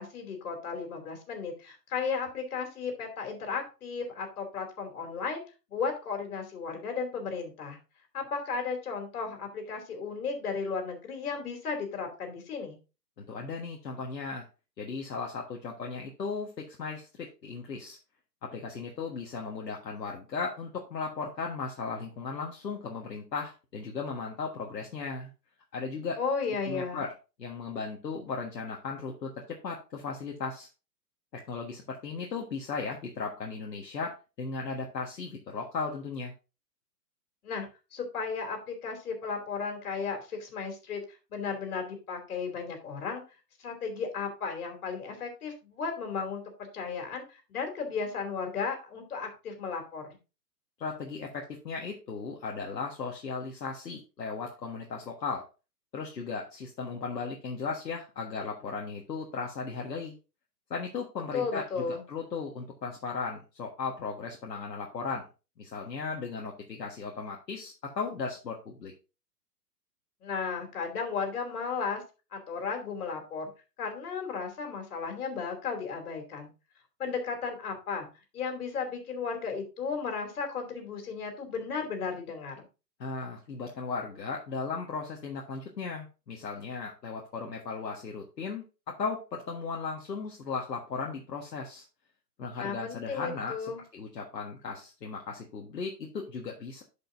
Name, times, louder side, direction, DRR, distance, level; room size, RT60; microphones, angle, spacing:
voice 1, 0.0-5.4 5.7-7.8 8.1-12.8 26.2-27.0 37.4-41.0 41.3-43.2 43.6-50.2 61.3-62.0 70.2-72.0 72.3-73.4 73.8-76.5 77.0-78.1 78.3-82.7 92.6-93.8, left 5 dB, 60° left, 4 dB, 3.0 m, -34 dB
voice 2, 13.2-14.5 14.8-18.0 18.4-25.3 25.7-26.2 26.7-27.1 27.4-30.7 31.3-36.3 50.8-55.5 55.9-60.1 60.7-65.3 65.6-68.9 83.0-91.8 92.4-96.8, left 4 dB, 80° left, 0 dB, 1.6 m, -36 dB
11.5 x 5.3 x 2.6 m, 0.31 s
hypercardioid pair, 125°, 49 cm